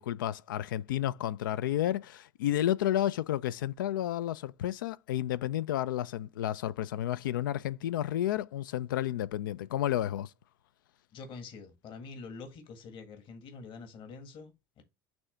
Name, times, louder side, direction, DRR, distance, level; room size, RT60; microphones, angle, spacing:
voice 1, 0.0-10.3, left 12 dB, 80° left, 0.4 m, -31 dB
voice 2, 11.1-14.8, left 4 dB, 50° left, 1.6 m, -46 dB
6.1 x 3.4 x 5.4 m
hypercardioid pair, 75°, 11 cm